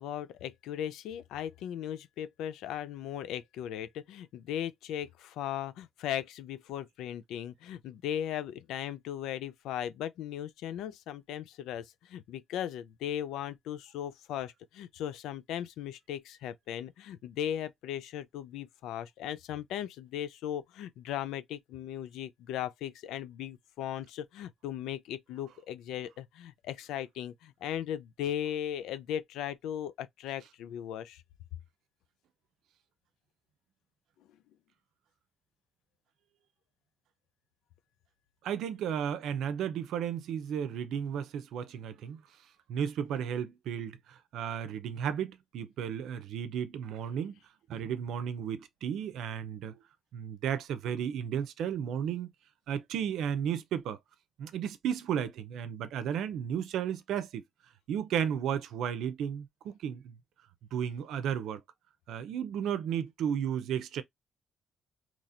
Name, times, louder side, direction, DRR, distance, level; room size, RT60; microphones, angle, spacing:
voice 1, 0.0-31.2, left 10 dB, 90° left, 0.4 m, -37 dB
voice 2, 38.4-42.2 42.7-47.4 47.7-49.8 50.1-52.3 52.7-54.0 54.4-57.4 57.9-60.2 60.7-61.6 62.1-64.0, right 8 dB, 80° right, 0.6 m, -34 dB
4.2 x 3.0 x 2.5 m
cardioid pair, 90°, 0 cm